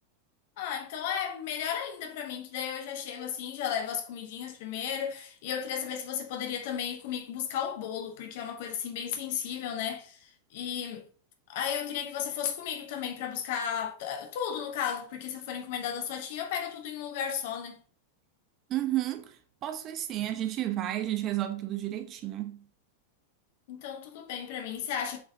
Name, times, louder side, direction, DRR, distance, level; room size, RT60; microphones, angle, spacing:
voice 1, 0.6-11.1 11.5-17.8 23.7-25.2, left 8 dB, 50° left, 1.3 m, -34 dB
voice 2, 18.7-19.4 19.6-22.6, right 13 dB, 35° right, 0.7 m, -32 dB
7.0 x 4.1 x 3.6 m
figure-of-eight pair, 90°, 0 cm